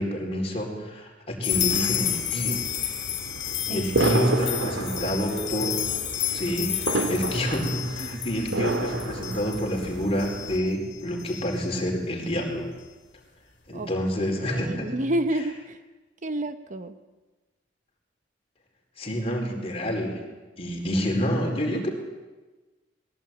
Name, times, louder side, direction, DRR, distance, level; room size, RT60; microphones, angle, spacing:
voice 1, 0.0-3.0 3.7-5.8 6.3-12.7 13.7-14.9 19.0-20.2 20.6-21.9, equal, 30° left, 1 dB, 4.6 m, -28 dB
sound 1, 1.4-11.8, left 11 dB, 60° left, 3.1 m, -31 dB
sound 2, 1.5-10.6, right 2 dB, 80° right, 2.2 m, -31 dB
voice 2, 4.2-4.7 8.0-8.2 13.7-13.9 14.4-15.8 16.2-17.0, right 1 dB, 40° right, 9 dB, 0.9 m, -30 dB
21.0 x 16.5 x 9.1 m, 1.2 s
head